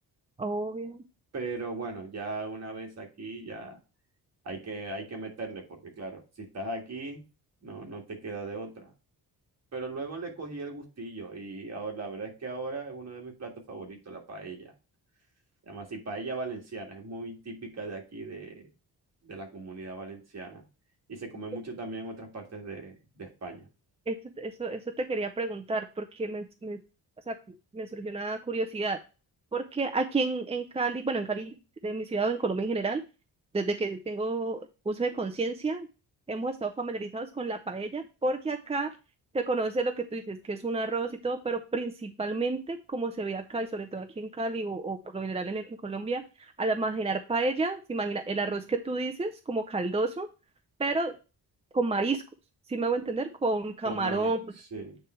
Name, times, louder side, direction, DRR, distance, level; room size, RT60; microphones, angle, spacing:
voice 1, 0.4-1.0 24.1-26.8 27.3-27.4 27.7-29.0 29.5-31.6 31.8-33.0 33.5-35.9 36.3-38.9 39.3-50.3 50.8-51.1 51.7-52.2 52.7-54.4, right 3 dB, 15° right, 5 dB, 0.4 m, -30 dB
voice 2, 1.3-3.8 4.4-7.2 7.6-8.9 9.7-14.7 15.7-18.7 19.2-20.7 21.1-23.7 53.8-55.0, right 3 dB, 40° right, 1 dB, 2.0 m, -38 dB
8.8 x 3.4 x 4.4 m, 0.32 s
wide cardioid pair, 165°, 40 cm